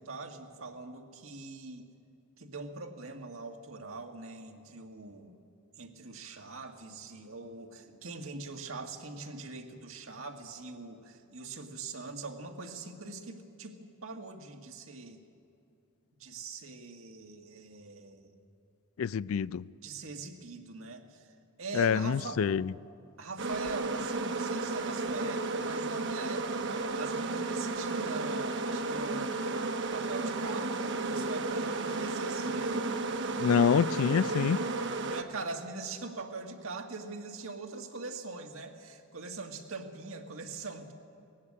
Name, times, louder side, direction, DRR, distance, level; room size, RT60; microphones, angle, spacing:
voice 1, 0.0-1.9 2.4-5.3 5.8-15.2 16.2-18.3 19.8-21.3 21.6-22.4 23.2-29.4 29.9-32.8 35.1-40.9, right 3 dB, 80° right, 1.8 m, -42 dB
voice 2, 19.0-19.7 21.7-22.7 33.4-34.6, left 7 dB, 85° left, 0.4 m, -26 dB
sound 1, 23.4-35.2, right 3 dB, 60° right, 1.0 m, -33 dB
18.5 x 15.0 x 9.7 m
head